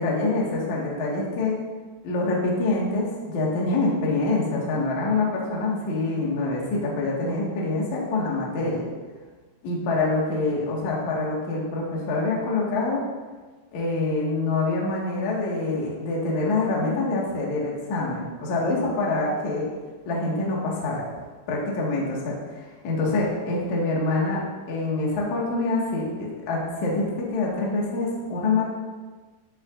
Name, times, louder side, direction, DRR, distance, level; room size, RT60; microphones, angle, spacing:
voice 1, 0.0-1.6 2.0-8.8 9.6-13.0 13.7-19.7 20.1-21.1 21.5-28.7, left 2 dB, 50° left, -4 dB, 2.5 m, -25 dB
13.5 x 8.8 x 2.6 m, 1.3 s
omnidirectional pair, 5.5 m